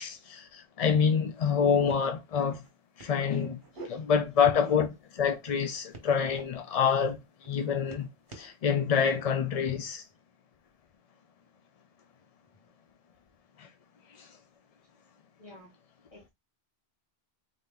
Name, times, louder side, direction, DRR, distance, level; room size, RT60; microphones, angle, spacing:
voice 1, 0.0-2.6 3.0-3.6 3.8-8.1 8.3-10.0 13.6-13.7 14.1-14.3, left 7 dB, 50° left, 0.4 m, -27 dB
sound 1, 0.9-1.0 1.2-1.6 1.9-2.1 2.5-2.7 3.0-3.9 4.4-5.0 5.4-6.4 6.9-7.1 7.4-8.5 9.1-9.4, right 3 dB, 50° right, 1.3 m, -48 dB
voice 2, 15.4-15.7 16.1-16.3, left 1 dB, 30° left, 2.1 m, -52 dB
3.8 x 2.8 x 3.7 m
omnidirectional pair, 1.1 m